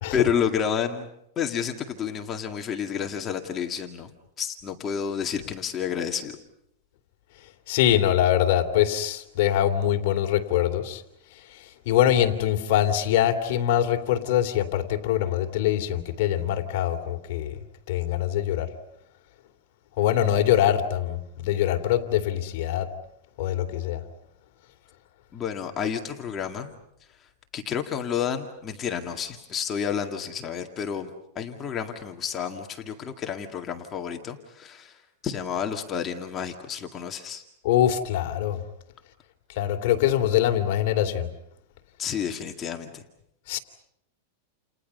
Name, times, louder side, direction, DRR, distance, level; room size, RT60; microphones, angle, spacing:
voice 1, 0.1-1.1 1.4-4.1 4.4-6.4 25.3-26.7 27.5-31.1 31.4-34.9 35.2-37.4 42.0-43.0, left 7 dB, 20° left, 2.0 m, -30 dB
voice 2, 7.7-11.0 11.9-17.6 17.9-18.7 20.0-22.9 23.4-24.0 37.6-38.6 39.6-41.3 43.5-43.6, left 11 dB, 50° left, 2.9 m, -23 dB
30.0 x 30.0 x 5.5 m
supercardioid pair, 160°, 0 cm